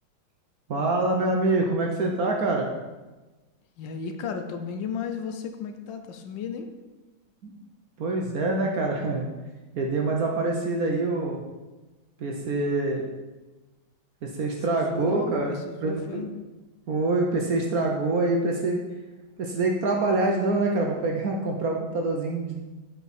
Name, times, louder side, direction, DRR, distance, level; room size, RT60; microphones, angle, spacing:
voice 1, 0.7-2.7 7.4-7.6 8.0-9.3 9.7-11.4 12.2-13.1 14.2-16.3 16.9-18.8 19.4-22.6, right 2 dB, 60° right, 1 dB, 1.0 m, -25 dB
voice 2, 3.8-6.7 14.5-16.3, left 6 dB, 75° left, 7 dB, 1.3 m, -34 dB
7.7 x 5.9 x 4.2 m, 1.2 s
omnidirectional pair, 2.2 m